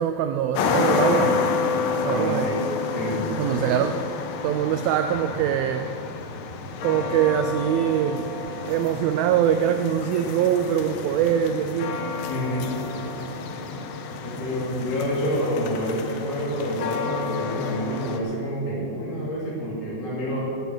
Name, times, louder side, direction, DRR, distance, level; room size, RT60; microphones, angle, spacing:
voice 1, 0.0-1.5 2.1-2.5 3.4-4.0 4.4-6.0 6.8-8.3 8.7-12.1, right 10 dB, 90° right, 2.1 m, -23 dB
sound 1, 0.5-18.2, left 5 dB, 85° left, 3.1 m, -29 dB
voice 2, 2.1-2.7 2.9-3.8 12.3-12.7 14.2-20.4, equal, 30° left, 2.7 m, -28 dB
17.5 x 9.3 x 6.2 m
omnidirectional pair, 4.8 m